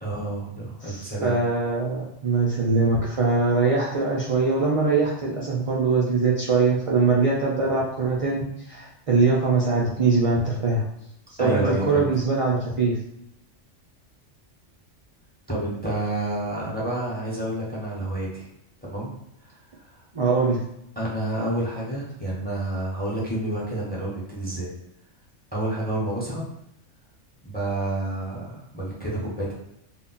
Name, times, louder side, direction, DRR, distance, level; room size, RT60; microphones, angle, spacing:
voice 1, 0.0-1.5 11.4-12.1 15.5-18.5 18.8-19.1 19.4-20.1 21.0-24.7 25.5-26.5 27.4-29.5, right 1 dB, 10° left, -5 dB, 0.5 m, -29 dB
voice 2, 0.8-10.8 11.4-12.9 20.1-20.6, right 4 dB, 60° right, -4 dB, 0.3 m, -22 dB
2.3 x 2.1 x 3.8 m, 0.79 s
omnidirectional pair, 1.3 m